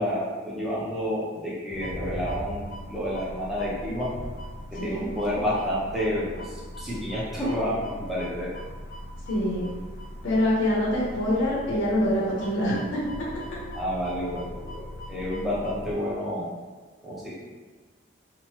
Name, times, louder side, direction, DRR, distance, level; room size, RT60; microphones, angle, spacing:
voice 1, 0.0-4.2 4.7-8.5 13.7-16.5 17.0-17.3, equal, ahead, -8 dB, 0.6 m, -30 dB
sound 1, 1.7-15.9, equal, 40° left, 0.3 m, -40 dB
voice 2, 9.3-9.7 10.2-12.8, left 1 dB, 80° left, -6 dB, 0.7 m, -25 dB
2.8 x 2.1 x 3.0 m, 1.4 s
head